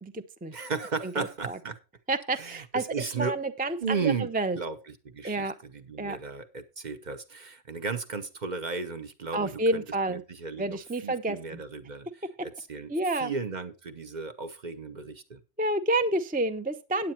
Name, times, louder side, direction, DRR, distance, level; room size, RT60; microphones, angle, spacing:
voice 1, 0.0-0.6 1.0-1.6 2.1-2.8 3.2-4.6 5.2-5.5 6.0-6.2 9.3-10.2 10.6-11.6 12.9-13.3 15.6-17.1, right 2 dB, 10° right, 9 dB, 0.5 m, -29 dB
voice 2, 0.5-1.8 2.4-3.4 3.8-4.3 4.5-4.8 5.1-12.1 12.4-12.9 13.2-15.4, right 5 dB, 40° right, 9 dB, 0.9 m, -34 dB
9.0 x 8.7 x 4.3 m, 0.30 s
omnidirectional pair, 1.2 m